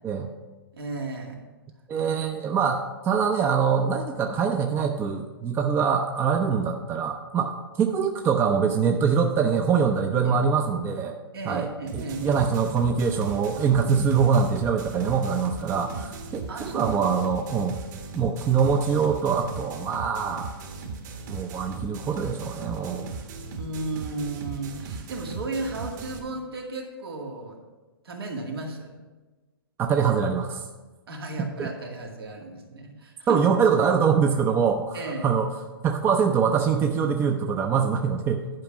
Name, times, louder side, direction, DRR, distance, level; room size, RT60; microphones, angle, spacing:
voice 1, 0.7-1.4 1.9-2.1 10.3-10.4 11.3-12.3 15.9-16.1 16.5-17.0 23.6-27.6 28.0-28.9 31.1-33.4 34.9-35.3, right 2 dB, 80° right, 0 dB, 2.2 m, -34 dB
voice 2, 1.9-7.5 7.8-11.2 11.5-11.7 11.9-17.8 18.1-20.5 21.3-23.1 29.8-30.6 31.6-31.7 33.3-35.5 35.8-38.5, right 6 dB, 20° right, 5 dB, 0.5 m, -24 dB
sound 1, 11.9-26.2, right 4 dB, 50° right, 1.6 m, -38 dB
10.5 x 5.0 x 5.9 m, 1.2 s
hypercardioid pair, 125°, 12 cm